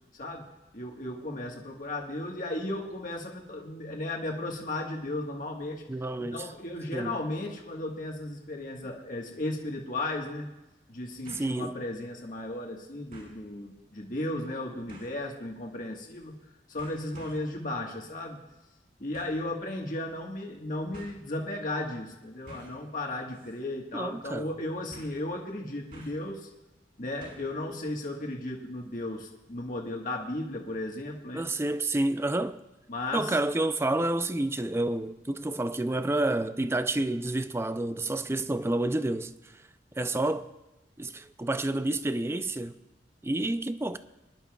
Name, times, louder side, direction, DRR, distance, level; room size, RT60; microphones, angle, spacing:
voice 1, 0.2-5.8 6.3-10.5 10.9-16.3 16.7-18.4 19.0-26.5 27.0-31.5 32.9-33.4, left 1 dB, 50° left, 1.5 m, -35 dB
voice 2, 5.9-6.5 6.9-7.2 11.3-11.7 23.9-24.5 31.3-32.6 33.1-39.3 40.0-40.5 41.0-42.7 43.2-44.0, right 2 dB, 15° right, 0.4 m, -29 dB
sound 1, 11.2-11.6 12.0-12.1 13.1-13.4 14.9-15.2 16.2-16.4 16.8-17.5 19.1-19.4 20.4-20.5 20.9-21.1 22.5-22.8 23.3-23.6 23.8-23.9 24.9-25.2 25.9-26.3 27.2-27.6 27.9-28.0, right 1 dB, 50° right, 4.8 m, -50 dB
23.0 x 11.0 x 2.4 m
head